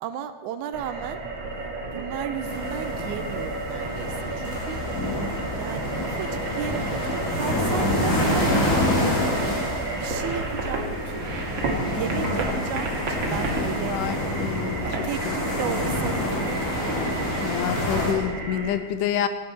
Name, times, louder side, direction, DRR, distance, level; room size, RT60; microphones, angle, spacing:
voice 1, 0.0-1.2 1.9-4.8 5.6-9.3 10.0-11.3 11.9-14.0 14.8-16.6, right 9 dB, 80° right, 10 dB, 2.0 m, -34 dB
sound 1, 0.7-18.7, right 2 dB, 45° right, 2.0 m, -32 dB
sound 2, 2.4-18.1, left 1 dB, 25° left, 2.4 m, -27 dB
voice 2, 14.4-15.3 17.4-19.3, left 10 dB, 90° left, 10 dB, 2.3 m, -28 dB
16.5 x 9.4 x 4.2 m, 1.3 s
omnidirectional pair, 3.6 m